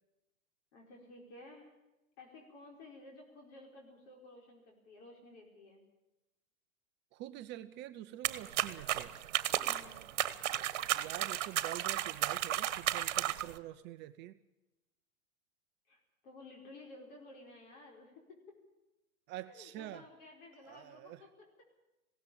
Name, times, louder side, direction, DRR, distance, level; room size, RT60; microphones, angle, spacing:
voice 1, 0.7-1.7 2.2-5.8 9.6-10.1 15.9-18.4 19.5-21.6, left 2 dB, 50° left, 0 dB, 5.2 m, -54 dB
voice 2, 7.1-9.1 10.9-14.4 19.3-20.0 20.6-21.2, right 14 dB, 25° right, 10 dB, 0.6 m, -46 dB
sound 1, 8.2-13.6, right 13 dB, 55° right, 1.4 m, -34 dB
20.5 x 17.0 x 8.8 m, 1.0 s
hypercardioid pair, 115°, 42 cm